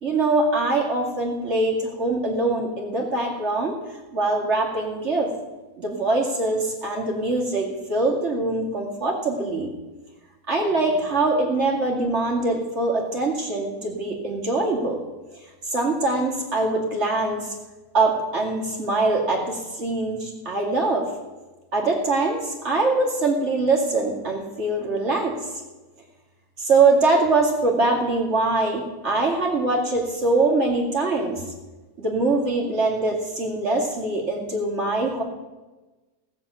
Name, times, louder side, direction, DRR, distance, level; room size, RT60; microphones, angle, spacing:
voice 1, 0.0-5.3 5.8-9.7 10.5-15.0 15.6-17.5 17.9-21.1 21.7-25.5 26.6-31.4 32.0-35.2, right 3 dB, 50° right, -2 dB, 2.6 m, -23 dB
17.0 x 7.2 x 8.3 m, 1.2 s
omnidirectional pair, 1.6 m